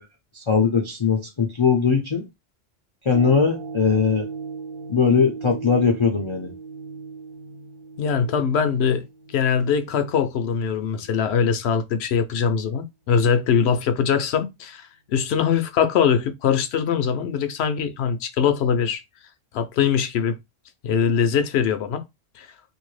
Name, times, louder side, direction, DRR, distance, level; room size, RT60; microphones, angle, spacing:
voice 1, 0.3-2.2 3.1-4.3 4.9-6.5, left 5 dB, 40° left, 0.4 m, -20 dB
sound 1, 3.1-11.5 12.0-12.1, right 5 dB, 70° right, 0.9 m, -38 dB
voice 2, 8.0-9.0 9.3-19.0 19.5-20.4 20.8-22.0 22.4-22.5, left 7 dB, 70° left, 0.8 m, -22 dB
2.7 x 2.6 x 3.1 m
omnidirectional pair, 1.2 m